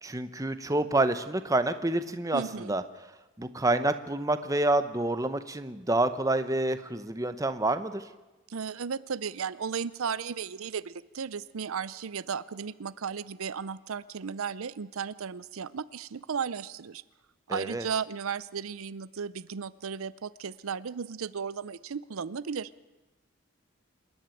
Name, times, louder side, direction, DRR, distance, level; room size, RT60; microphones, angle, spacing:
voice 1, 0.0-2.8 3.4-8.0 17.5-17.9, right 2 dB, 15° right, 11 dB, 0.8 m, -28 dB
voice 2, 2.3-2.7 8.5-17.0 17.5-22.7, right 6 dB, 85° right, 17 dB, 0.6 m, -35 dB
27.0 x 11.0 x 9.1 m, 1.1 s
head